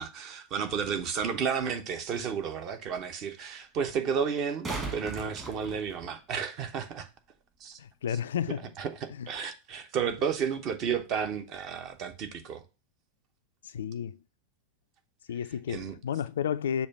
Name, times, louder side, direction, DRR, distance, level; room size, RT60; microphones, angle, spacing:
voice 1, 0.0-7.1 7.6-7.8 8.8-12.6 15.7-15.9, right 7 dB, 40° right, 0.8 m, -32 dB
sound 1, 4.3-6.4 9.3-9.4, right 3 dB, 20° right, 1.5 m, -38 dB
voice 2, 7.8-8.7 9.2-9.3 13.6-14.2 15.3-16.9, left 8 dB, 60° left, 0.3 m, -32 dB
6.5 x 2.6 x 5.6 m
figure-of-eight pair, 90°, 0 cm